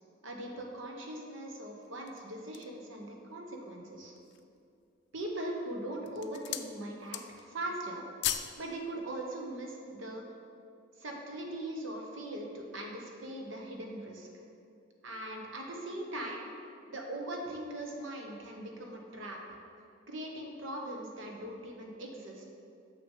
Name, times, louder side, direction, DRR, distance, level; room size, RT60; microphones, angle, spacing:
voice 1, 0.2-4.1 5.1-8.1 8.6-10.2 11.0-14.3 15.0-16.4 16.9-19.4 20.1-22.4, right 1 dB, 85° right, 1 dB, 1.2 m, -40 dB
sound 1, 1.8-2.8 3.4-3.5 4.0-4.6 5.3-5.6 6.0-6.7 7.0-7.5 7.8-8.6 8.9-9.1, left 11 dB, 60° left, 0.4 m, -37 dB
6.9 x 6.4 x 5.5 m, 2.5 s
head